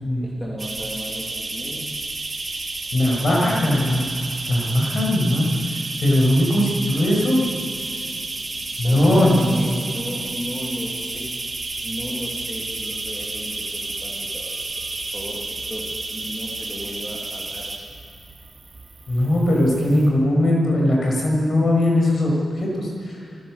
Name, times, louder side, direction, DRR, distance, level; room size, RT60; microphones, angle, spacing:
voice 1, 0.2-1.9 8.8-11.4 11.8-14.8 15.1-17.7, equal, ahead, -4 dB, 3.0 m, -35 dB
sound 1, 0.6-20.1, right 2 dB, 30° right, 2.6 m, -31 dB
voice 2, 2.9-4.1 4.5-5.5 6.0-7.4 8.8-9.6 19.1-23.2, left 1 dB, 45° left, -1 dB, 6.6 m, -19 dB
28.5 x 15.5 x 6.7 m, 2.5 s
wide cardioid pair, 160°, 0 cm